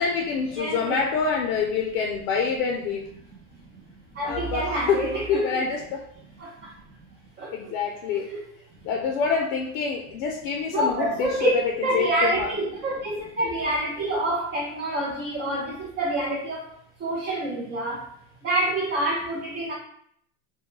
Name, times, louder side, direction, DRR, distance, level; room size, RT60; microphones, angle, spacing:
voice 1, 0.0-3.0 4.2-5.0 5.3-6.0 7.5-8.3 8.8-12.5, left 5 dB, 60° left, 2 dB, 0.5 m, -26 dB
voice 2, 0.6-1.0 4.2-5.6 6.4-6.5 7.4-7.5 8.1-8.4 10.7-11.5 11.8-16.6 17.0-18.0 18.4-19.7, right 1 dB, 25° right, -5 dB, 0.5 m, -27 dB
2.2 x 2.1 x 3.0 m, 0.67 s
supercardioid pair, 120°, 46 cm